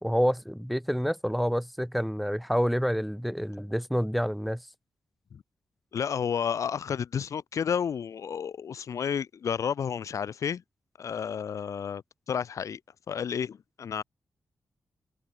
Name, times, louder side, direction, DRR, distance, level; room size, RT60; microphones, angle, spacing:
voice 1, 0.0-4.6, equal, ahead, 4.5 m, -28 dB
voice 2, 5.9-10.6 11.0-12.8 13.1-14.0, left 7 dB, 70° left, 2.5 m, -31 dB
open air
wide cardioid pair, 115°, 5 cm